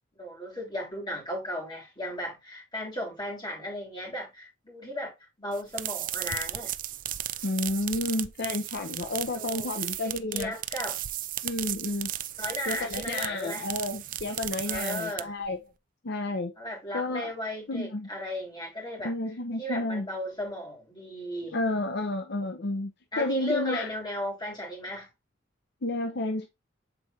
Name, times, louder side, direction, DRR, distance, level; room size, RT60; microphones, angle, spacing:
voice 1, 0.2-5.1 5.4-6.7 9.3-9.7 10.0-11.0 12.4-13.7 14.6-15.3 16.6-19.1 19.6-21.6 23.1-25.1, equal, 25° left, 3.1 m, -35 dB
sound 1, 5.5-15.5, right 13 dB, 45° right, 0.5 m, -35 dB
voice 2, 7.4-10.5 11.4-12.1 12.7-15.6 16.0-16.5 16.9-17.3 17.7-18.1 19.0-20.1 21.5-22.9 23.2-23.9 25.8-26.5, left 2 dB, 60° left, 0.7 m, -31 dB
7.6 x 4.4 x 2.8 m
head